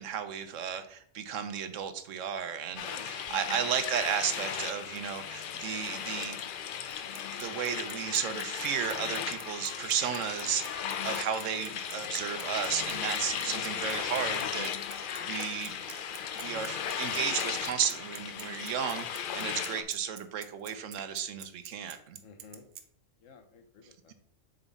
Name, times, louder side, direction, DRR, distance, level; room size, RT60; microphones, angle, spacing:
voice 1, 0.0-6.4 7.3-16.1 16.4-22.2, right 8 dB, 75° right, 9 dB, 1.0 m, -34 dB
sound 1, 2.8-19.8, left 8 dB, 65° left, 0.5 m, -36 dB
Bicycle, 6.9-22.8, right 9 dB, 60° right, 0.7 m, -47 dB
voice 2, 13.1-13.6 22.2-22.7 23.2-24.1, left 5 dB, 80° left, 6 dB, 1.2 m, -51 dB
7.0 x 4.1 x 4.0 m, 0.63 s
omnidirectional pair, 1.3 m